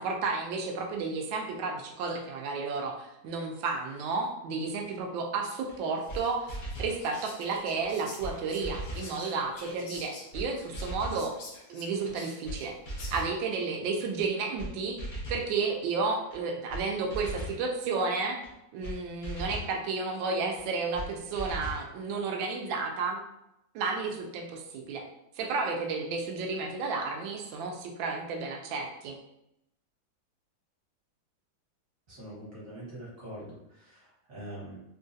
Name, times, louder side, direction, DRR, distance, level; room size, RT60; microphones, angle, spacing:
voice 1, 0.0-6.5 6.8-11.3 11.7-12.8 13.1-18.4 18.7-23.2 23.7-25.0 25.4-29.2, right 4 dB, 80° right, 2 dB, 1.3 m, -32 dB
sound 1, 5.7-5.8 6.1-6.2 6.5-7.0 7.8-7.9 8.2-8.3 8.6-9.1 9.9-10.0 10.3-10.5 10.7-11.2 12.1-12.2 12.4-12.6 12.9-13.3 14.2-14.3 14.6-14.7 15.0-15.5 16.3-16.4 16.7-16.8 17.1-17.6 18.4-18.5 18.8-19.0 19.2-19.7 20.6-20.7 20.9-21.1 21.3-21.8, right 1 dB, 55° left, 0.5 m, -38 dB
Whispering, 6.0-13.5, left 3 dB, 85° left, 1.5 m, -49 dB
voice 2, 32.1-34.8, right 1 dB, 45° right, -6 dB, 1.6 m, -44 dB
3.6 x 2.4 x 2.6 m, 0.83 s
omnidirectional pair, 2.2 m